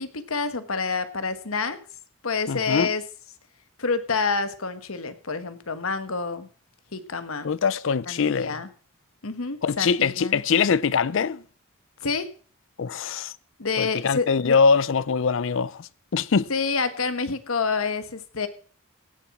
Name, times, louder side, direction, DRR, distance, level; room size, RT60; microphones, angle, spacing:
voice 1, 0.0-1.8 2.2-3.0 3.8-6.5 6.9-7.5 8.1-8.7 9.2-10.4 12.0-12.3 13.6-14.6 16.5-18.5, left 4 dB, 80° left, 1.3 m, -28 dB
voice 2, 2.5-2.9 7.4-8.5 9.6-11.4 12.8-13.3 13.8-16.5, left 5 dB, 65° left, 0.5 m, -23 dB
16.5 x 7.2 x 5.9 m
head